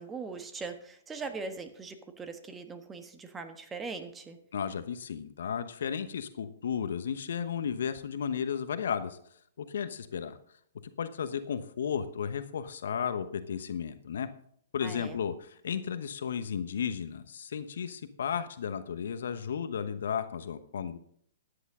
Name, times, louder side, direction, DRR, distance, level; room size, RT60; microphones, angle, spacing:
voice 1, 0.0-4.4 14.8-15.2, right 4 dB, 15° right, 8 dB, 1.4 m, -40 dB
voice 2, 4.5-9.2 9.6-10.4 11.0-14.3 14.7-21.0, left 7 dB, 70° left, 11 dB, 1.0 m, -34 dB
13.5 x 10.0 x 3.7 m, 0.64 s
hypercardioid pair, 120°, 0 cm